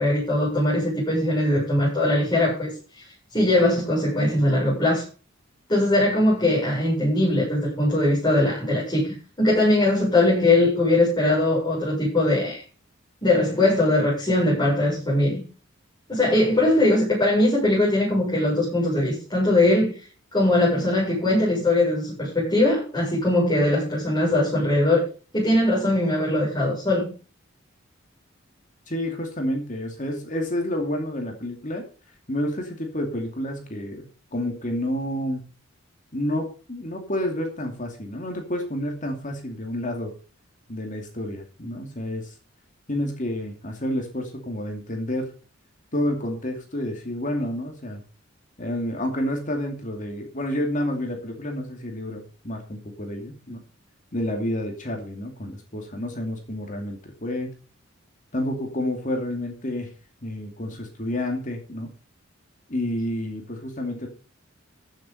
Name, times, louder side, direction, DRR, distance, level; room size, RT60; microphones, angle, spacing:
voice 1, 0.0-3.0 3.3-5.1 5.7-12.6 13.2-15.4 16.1-25.0 25.3-27.1, left 1 dB, 20° left, -7 dB, 7.3 m, -21 dB
voice 2, 28.9-31.8 32.3-35.4 36.1-40.1 40.7-42.3 42.9-45.3 45.9-48.0 48.6-53.6 54.1-57.5 58.3-59.9 60.2-61.9 62.7-64.1, left 1 dB, 40° left, 3 dB, 2.6 m, -29 dB
14.5 x 7.4 x 5.5 m, 0.37 s
head